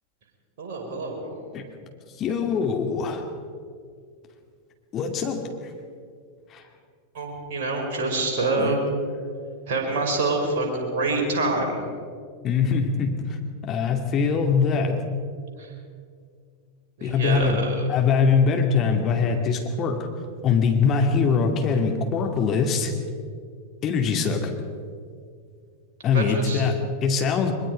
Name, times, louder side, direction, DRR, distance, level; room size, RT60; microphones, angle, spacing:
voice 1, 0.6-1.4 7.1-8.8 9.7-11.8 15.6-15.7 17.0-17.9 26.1-26.6, right 2 dB, 50° right, 0 dB, 5.6 m, -26 dB
voice 2, 2.2-3.2 4.9-5.5 6.5-6.6 8.6-8.8 12.4-13.4 13.6-15.0 17.0-17.6 17.9-20.1 20.4-22.9 23.8-24.5 26.0-27.5, left 5 dB, 30° left, 3 dB, 2.5 m, -22 dB
23.0 x 22.0 x 5.2 m, 2.2 s
figure-of-eight pair, 90°, 0 cm